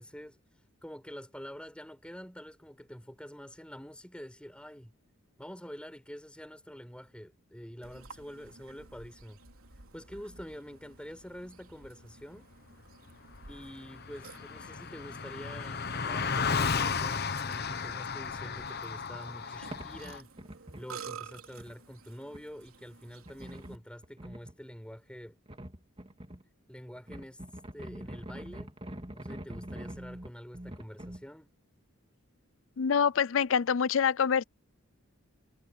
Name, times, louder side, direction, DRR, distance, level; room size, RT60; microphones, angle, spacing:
voice 1, 0.0-4.9 5.4-9.4 9.7-12.5 13.5-20.3 20.8-25.4 26.7-28.8 29.1-31.5, equal, 5° left, 4.6 m, -47 dB
Burping eructation, 7.8-23.8, right 5 dB, 80° right, 3.4 m, -52 dB
Car passing by, 13.1-13.2 13.4-20.2, left 5 dB, 50° left, 1.0 m, -34 dB
sound 1, 19.3-19.4 19.7-21.0 21.4-21.7 22.3-22.4 23.2-24.5 25.5-26.4 26.9-31.2, right 1 dB, 25° right, 3.1 m, -44 dB
voice 2, 32.8-34.4, left 7 dB, 65° left, 0.4 m, -26 dB
head